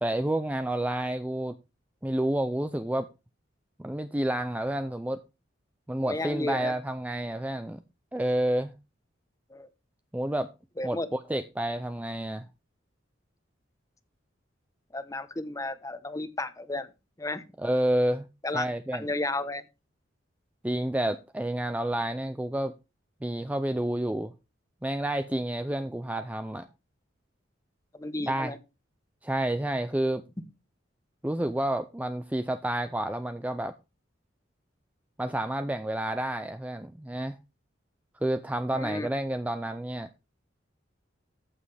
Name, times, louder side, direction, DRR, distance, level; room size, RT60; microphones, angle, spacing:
voice 1, 0.0-1.5 2.0-3.1 3.8-5.2 5.9-7.8 8.1-8.7 10.1-10.5 10.8-12.5 17.6-18.3 18.5-19.1 20.6-22.7 23.2-24.3 24.8-26.7 28.2-28.5 29.2-30.2 31.2-33.7 35.2-37.4 38.2-40.1, right 1 dB, 10° right, 0.4 m, -29 dB
voice 2, 6.0-6.7 9.5-9.7 10.8-11.1 14.9-16.9 17.2-17.4 18.4-18.6 18.9-19.6 27.9-28.6 38.7-39.1, left 2 dB, 20° left, 1.0 m, -33 dB
14.0 x 7.4 x 3.4 m
head